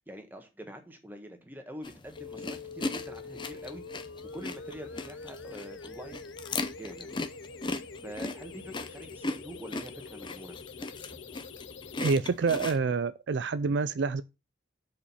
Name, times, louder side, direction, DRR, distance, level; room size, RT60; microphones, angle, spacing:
voice 1, 0.1-3.8 4.3-7.2 8.0-10.6, equal, 10° right, 1.4 m, -45 dB
sound 1, 1.8-12.8, left 3 dB, 25° left, 0.6 m, -39 dB
sound 2, 2.2-12.2, left 4 dB, 75° left, 0.7 m, -45 dB
voice 2, 12.0-14.2, right 4 dB, 65° right, 0.4 m, -27 dB
6.9 x 5.1 x 5.6 m
head